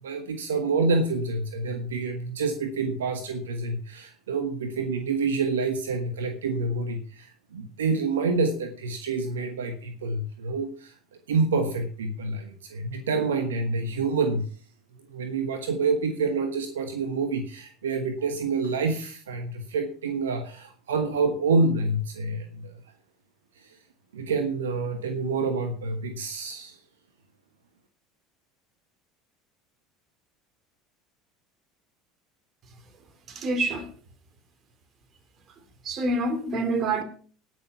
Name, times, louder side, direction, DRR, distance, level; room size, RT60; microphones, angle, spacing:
voice 1, 0.0-10.9 11.3-14.5 15.1-22.7 23.6-23.7 24.1-26.8, right 3 dB, 75° right, 1.2 m, -27 dB
voice 2, 33.3-33.9 35.8-37.0, right 2 dB, 40° right, 2.7 m, -26 dB
18.5 x 6.4 x 5.7 m
figure-of-eight pair, 70°, 0 cm